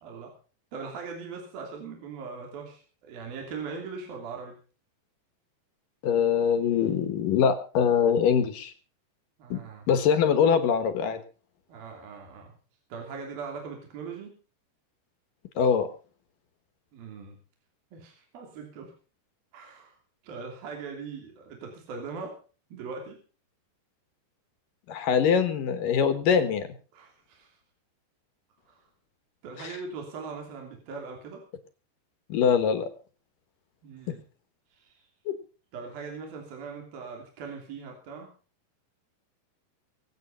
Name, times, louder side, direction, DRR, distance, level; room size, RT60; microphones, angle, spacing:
voice 1, 0.0-0.3 0.7-4.6 9.4-9.8 11.7-12.5 12.9-14.4 16.9-17.4 17.9-18.9 19.5-19.9 20.2-22.4 22.7-23.2 26.9-27.6 28.7-28.8 29.4-31.4 33.8-34.2 34.8-35.0 35.7-38.3, right 5 dB, 60° right, 1 dB, 4.6 m, -40 dB
voice 2, 6.0-8.7 9.5-9.6 9.9-11.2 15.6-15.9 24.9-26.7 29.6-29.8 32.3-32.9 34.1-34.2 35.3-35.4, left 7 dB, 65° left, 10 dB, 2.6 m, -23 dB
23.5 x 8.6 x 5.6 m, 0.38 s
omnidirectional pair, 5.0 m